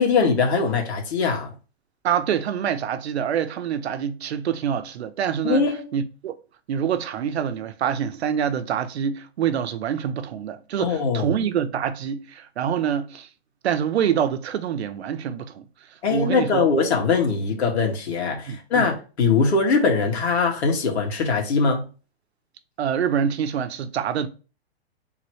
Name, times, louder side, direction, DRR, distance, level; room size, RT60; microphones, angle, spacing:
voice 1, 0.0-1.5 5.4-5.9 10.8-11.3 16.0-21.8, left 4 dB, 85° left, 1.9 m, -21 dB
voice 2, 2.0-5.7 5.9-6.3 6.7-13.3 13.6-15.7 16.1-16.7 18.5-18.9 22.8-24.3, right 8 dB, 80° right, 0.8 m, -26 dB
3.6 x 3.1 x 4.7 m
hypercardioid pair, 165°, 32 cm